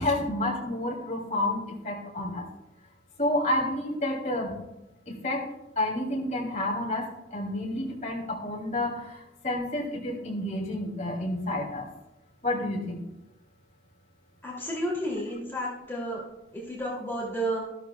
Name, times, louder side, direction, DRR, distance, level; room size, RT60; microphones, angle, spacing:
voice 1, 0.0-2.5 3.2-4.5 5.1-5.5 5.8-11.9 12.4-13.0, left 1 dB, 40° left, -2 dB, 2.6 m, -30 dB
voice 2, 14.4-16.2 16.5-17.6, right 1 dB, 10° left, -4 dB, 2.6 m, -31 dB
13.0 x 13.0 x 2.3 m, 0.95 s
head